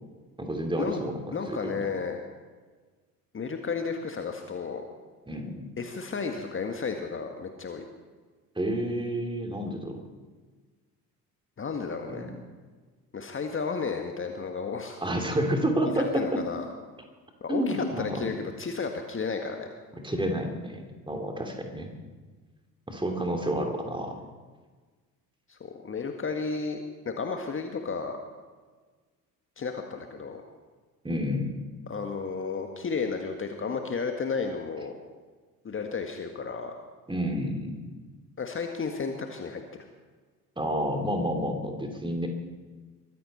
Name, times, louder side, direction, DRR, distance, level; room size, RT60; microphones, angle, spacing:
voice 1, 0.4-1.2 1.5-1.8 5.3-5.6 8.5-10.0 12.1-12.3 15.0-16.4 17.5-18.2 20.0-21.9 22.9-24.1 31.0-31.5 37.1-37.8 40.6-42.3, equal, 10° right, 3 dB, 3.1 m, -29 dB
voice 2, 1.3-2.2 3.3-4.8 5.8-7.8 11.6-12.3 13.1-15.0 16.0-16.7 17.4-19.7 25.5-26.8 27.0-28.2 29.6-30.4 31.9-35.0 35.6-36.7 38.4-39.6, left 5 dB, 25° left, 4 dB, 1.7 m, -33 dB
23.0 x 14.5 x 4.3 m, 1.4 s
figure-of-eight pair, 55°, 48 cm